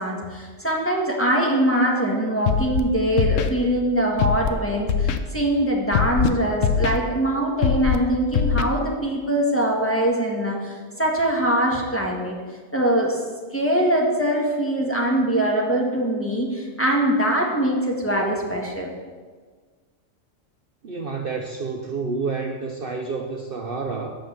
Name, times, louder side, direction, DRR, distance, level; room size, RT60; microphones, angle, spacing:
voice 1, 0.0-12.3 12.7-13.2 13.5-18.9, right 1 dB, 10° left, -2 dB, 1.7 m, -22 dB
Scratching (performance technique), 2.5-2.8 3.2-3.5 4.2-4.5 4.9-5.2 5.9-6.3 6.6-7.0 7.6-8.0 8.3-8.6, left 7 dB, 75° left, 1.0 m, -21 dB
voice 2, 20.8-24.2, right 4 dB, 50° right, 2 dB, 0.8 m, -29 dB
9.0 x 6.4 x 7.0 m, 1.5 s
omnidirectional pair, 1.4 m